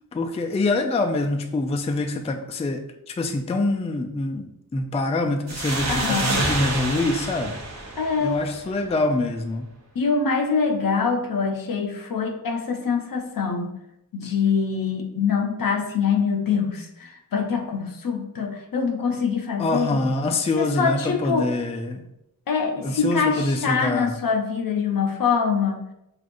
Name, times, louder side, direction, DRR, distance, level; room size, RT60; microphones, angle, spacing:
voice 1, 0.1-7.6 8.2-9.7 19.6-22.1 22.8-24.2, left 2 dB, 20° left, 4 dB, 0.3 m, -25 dB
sound 1, 5.5-8.9, right 2 dB, 50° right, 0.7 m, -28 dB
voice 2, 5.9-6.4 8.0-8.4 10.0-13.7 14.1-20.0 20.6-21.5 22.5-25.8, left 5 dB, 70° left, 4 dB, 0.6 m, -24 dB
6.1 x 2.5 x 2.5 m, 0.85 s
wide cardioid pair, 85°, 36 cm